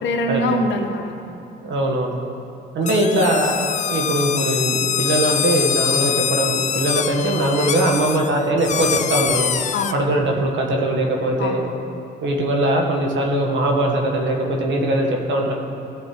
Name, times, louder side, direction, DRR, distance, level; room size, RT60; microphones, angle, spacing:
voice 1, 0.0-1.4 9.7-10.0 11.4-11.8, left 1 dB, 70° left, 3 dB, 1.2 m, -24 dB
voice 2, 1.6-2.2 2.7-9.5 9.9-11.6 12.2-15.5, right 1 dB, 70° right, 1 dB, 1.5 m, -21 dB
sound 1, 2.8-9.9, left 8 dB, 35° left, 0.4 m, -24 dB
15.0 x 5.5 x 4.5 m, 2.9 s
cardioid pair, 90°, 20 cm